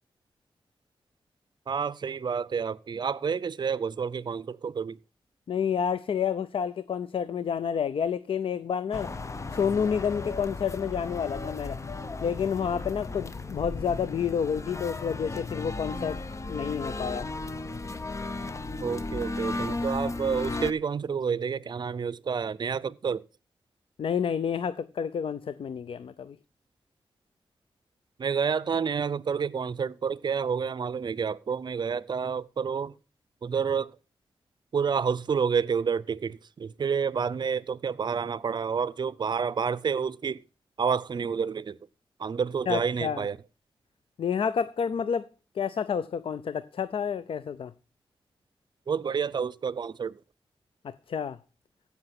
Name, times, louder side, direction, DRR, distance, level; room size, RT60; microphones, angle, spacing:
voice 1, 1.7-5.0 18.8-23.2 28.2-32.9 33.4-33.9 34.7-40.4 40.8-41.8 42.2-43.4 48.9-50.1, right 6 dB, 50° right, 0.5 m, -29 dB
voice 2, 5.5-9.1 9.5-11.8 12.2-16.2 16.5-17.3 24.0-26.4 42.7-43.3 44.2-45.3 45.5-47.7 50.8-51.4, left 7 dB, 70° left, 0.5 m, -29 dB
sound 1, 8.9-20.7, left 3 dB, 30° left, 0.7 m, -35 dB
15.5 x 5.9 x 5.8 m
wide cardioid pair, 100°, 9 cm